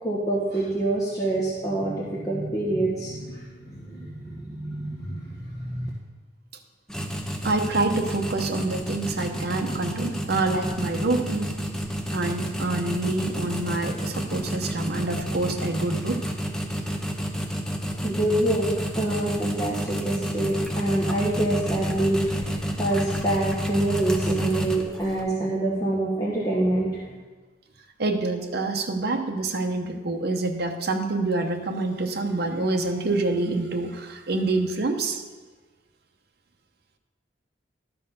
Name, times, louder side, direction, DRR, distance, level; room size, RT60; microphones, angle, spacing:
voice 1, 0.0-5.9 18.0-18.7 18.9-27.0, right 1 dB, 20° left, -6 dB, 1.1 m, -26 dB
sound 1, 6.9-25.2, equal, 5° left, 0.6 m, -30 dB
voice 2, 7.4-11.5 12.1-16.2 28.0-35.2, right 2 dB, 60° right, 4 dB, 0.8 m, -27 dB
12.0 x 4.6 x 5.3 m, 1.3 s
head